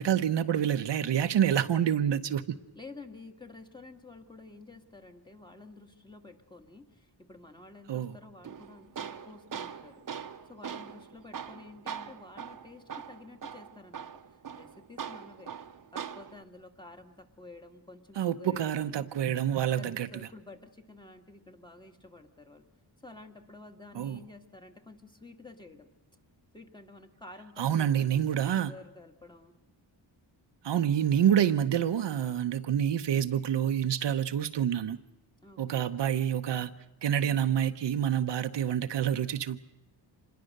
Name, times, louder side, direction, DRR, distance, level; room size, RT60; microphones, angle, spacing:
voice 1, 0.0-2.6 7.9-8.1 18.2-20.1 23.9-24.2 27.6-28.7 30.6-35.0 35.6-36.7 37.0-39.6, right 9 dB, 70° right, 0.9 m, -27 dB
voice 2, 2.7-10.0 10.5-15.5 15.9-19.1 19.8-22.7 23.0-25.9 26.5-29.5 31.0-31.2 35.4-35.9, left 2 dB, 10° left, 1.7 m, -51 dB
Tools, 8.4-16.4, right 7 dB, 45° right, 1.0 m, -42 dB
26.0 x 21.5 x 6.6 m
wide cardioid pair, 120°, 45 cm